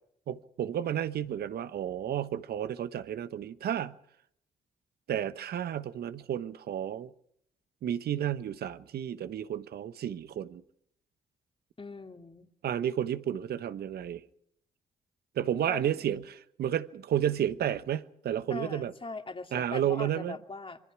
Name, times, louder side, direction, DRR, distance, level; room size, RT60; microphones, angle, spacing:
voice 1, 0.3-4.0 5.1-7.1 7.8-10.6 12.6-14.2 15.4-18.9 19.5-20.4, right 10 dB, 70° right, 1.1 m, -32 dB
voice 2, 11.8-12.5 15.7-16.1 18.5-20.8, left 3 dB, 30° left, 2.5 m, -41 dB
26.5 x 23.5 x 4.8 m
hypercardioid pair, 40°, 17 cm